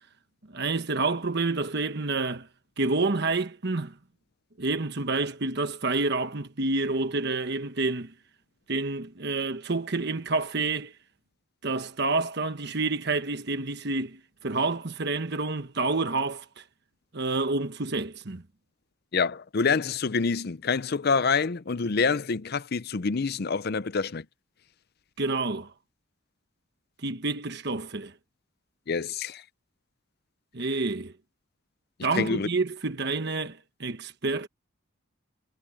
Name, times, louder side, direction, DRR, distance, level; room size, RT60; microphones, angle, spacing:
voice 1, 0.5-2.5 2.8-3.9 4.6-8.1 8.7-10.9 11.6-16.6 17.1-18.4 25.2-25.7 27.0-28.1 30.5-31.1 32.0-34.5, right 3 dB, 55° right, 1.2 m, -28 dB
voice 2, 19.1-24.2 28.9-29.4 32.1-32.5, left 5 dB, 50° left, 0.6 m, -26 dB
head